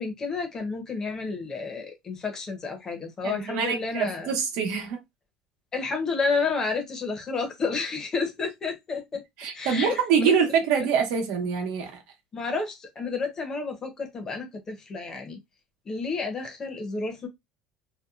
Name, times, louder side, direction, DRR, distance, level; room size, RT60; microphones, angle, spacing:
voice 1, 0.0-4.3 5.7-9.2 9.5-10.3 12.3-15.4 15.9-17.3, left 4 dB, 20° left, 0.7 m, -30 dB
voice 2, 3.2-5.0 9.4-12.0, right 6 dB, 70° right, 0.9 m, -25 dB
2.7 x 2.2 x 2.3 m
cardioid pair, 160°, 3 cm